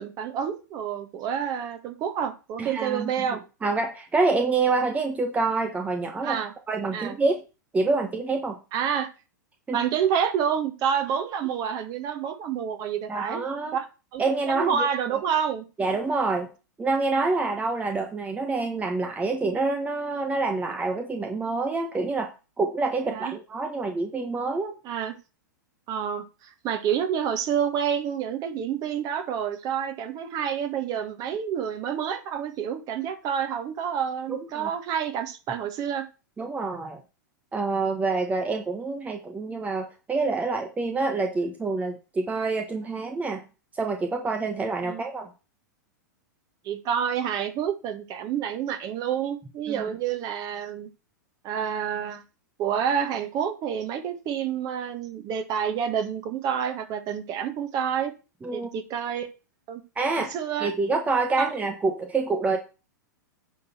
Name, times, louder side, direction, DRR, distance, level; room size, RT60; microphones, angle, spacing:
voice 1, 0.0-3.4 6.2-6.5 6.9-7.2 8.7-9.1 9.7-13.4 13.7-13.9 14.1-14.2 14.5-15.6 23.1-23.3 24.8-25.1 25.9-36.1 44.8-45.0 46.6-50.9 51.4-52.2 52.6-58.1 58.5-59.3 59.7-59.8 60.2-60.7 61.4-61.5, right 8 dB, 35° right, 8 dB, 1.9 m, -28 dB
voice 2, 2.6-6.4 6.7-7.4 7.7-8.6 9.7-9.8 13.1-13.8 14.2-15.1 15.8-16.5 16.8-24.7 34.3-34.7 36.4-37.0 37.5-43.4 43.7-45.3 49.7-49.8 58.4-58.7 60.0-60.3 60.6-62.6, right 3 dB, 15° right, 5 dB, 1.1 m, -27 dB
9.5 x 4.1 x 6.8 m, 0.32 s
hypercardioid pair, 105°, 10 cm